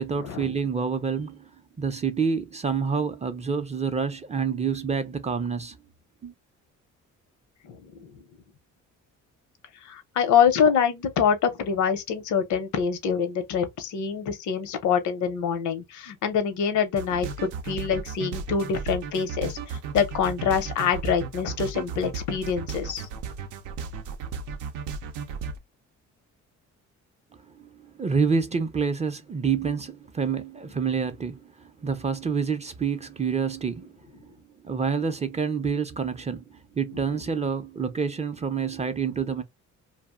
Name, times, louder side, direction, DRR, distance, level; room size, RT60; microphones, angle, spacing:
voice 1, 0.0-1.5 1.8-5.8 6.2-6.3 27.5-27.7 28.0-33.9 34.2-34.3 34.6-39.4, right 6 dB, 25° right, 0.4 m, -27 dB
voice 2, 7.6-8.1 9.8-23.1, left 7 dB, 75° left, 0.7 m, -25 dB
sound 1, 17.0-25.6, right 5 dB, 85° right, 0.5 m, -34 dB
2.4 x 2.0 x 3.5 m
cardioid pair, 90°, 30 cm